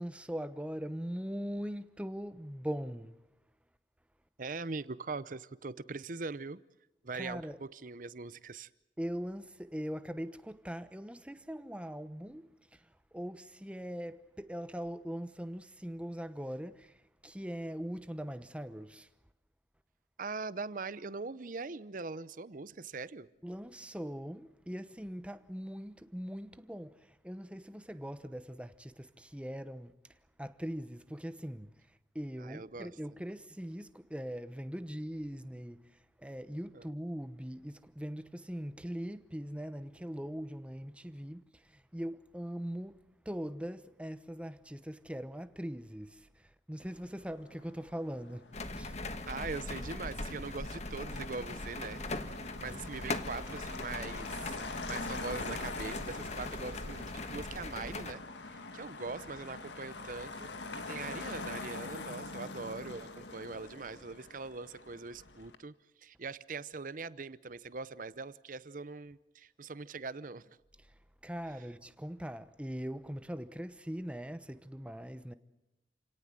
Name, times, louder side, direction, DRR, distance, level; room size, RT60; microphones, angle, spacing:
voice 1, 0.0-3.2 7.1-7.6 9.0-19.1 23.4-49.0 70.8-75.3, equal, 5° right, 0.9 m, -41 dB
voice 2, 4.4-6.6 7.0-8.7 20.2-23.3 32.4-32.9 36.7-36.9 49.3-54.5 54.9-60.5 60.9-70.6, right 4 dB, 50° right, 0.7 m, -42 dB
Motor vehicle (road), 46.8-65.6, left 3 dB, 90° left, 1.8 m, -45 dB
sound 1, 48.5-58.1, left 2 dB, 40° left, 1.4 m, -40 dB
28.5 x 18.0 x 7.6 m
head